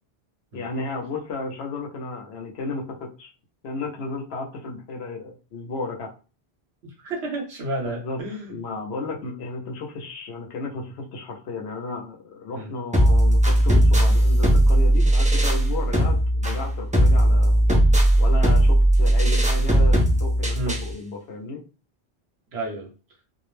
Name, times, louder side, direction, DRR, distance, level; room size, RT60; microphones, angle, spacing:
voice 1, 0.5-3.3 3.6-6.1 7.8-8.2 8.5-17.8 18.2-21.6, left 3 dB, 75° left, 1 dB, 0.9 m, -33 dB
voice 2, 7.0-8.6 12.5-12.7 20.6-20.8 22.5-22.9, right 2 dB, 75° right, 1 dB, 1.1 m, -31 dB
sound 1, 12.9-20.9, right 1 dB, 10° right, 0.4 m, -18 dB
2.4 x 2.0 x 3.1 m, 0.34 s
omnidirectional pair, 1.1 m